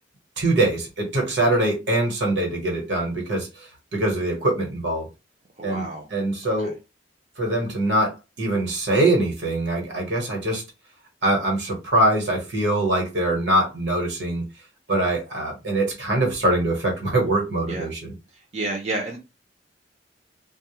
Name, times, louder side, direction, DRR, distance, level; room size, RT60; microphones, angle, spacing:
voice 1, 0.4-3.5 3.9-5.1 5.6-6.8 7.4-10.6 11.2-14.5 14.9-18.1, right 1 dB, 75° right, 1.2 m, -23 dB
voice 2, 5.6-6.0 6.6-6.7 17.7-17.9 18.5-19.2, right 2 dB, 40° right, 0.5 m, -30 dB
2.3 x 2.1 x 2.9 m
head